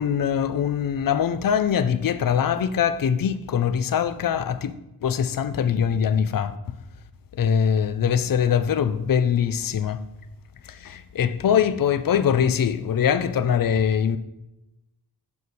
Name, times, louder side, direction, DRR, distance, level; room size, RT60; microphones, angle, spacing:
voice 1, 0.0-4.7 5.0-6.5 7.4-10.0 10.7-14.2, left 8 dB, 55° left, 0.6 m, -22 dB
6.9 x 6.5 x 5.3 m
wide cardioid pair, 120°, 40 cm